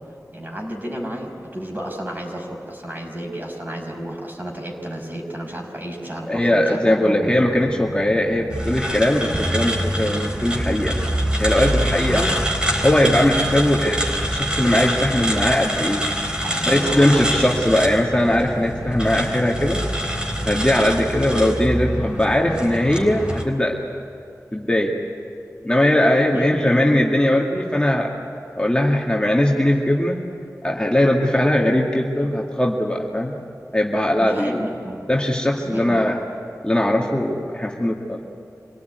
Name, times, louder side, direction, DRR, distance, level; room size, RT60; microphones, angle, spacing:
voice 1, 0.3-7.3 12.1-12.5 16.4-17.4 26.3-26.6 34.2-35.1 35.6-36.1, right 1 dB, 30° right, 0 dB, 5.5 m, -32 dB
voice 2, 6.3-11.0 11.4-12.3 12.8-14.0 14.3-16.1 16.7-19.8 20.5-23.8 24.5-24.9 25.6-28.1 28.6-30.2 30.6-33.4 33.7-34.7 35.1-36.3 36.6-38.2, left 1 dB, 15° left, -2 dB, 2.2 m, -19 dB
sound 1, 7.2-22.9, left 1 dB, 40° left, 2.9 m, -35 dB
sound 2, 8.5-23.4, right 1 dB, 15° right, 3.8 m, -25 dB
26.0 x 18.0 x 9.5 m, 2.6 s
wide cardioid pair, 65°, 6 cm